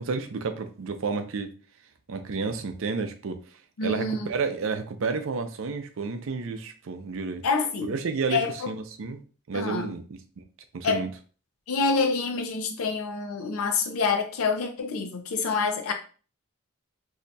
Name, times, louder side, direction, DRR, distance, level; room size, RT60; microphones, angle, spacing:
voice 1, 0.0-1.5 2.1-3.4 3.8-7.5 7.8-9.2 9.5-10.0 10.7-11.1, right 4 dB, 65° right, 0.5 m, -31 dB
voice 2, 3.8-4.3 7.4-7.9 8.3-8.7 9.5-9.9 10.8-11.1 11.7-15.9, left 4 dB, 80° left, 0.5 m, -27 dB
2.7 x 2.2 x 3.9 m
head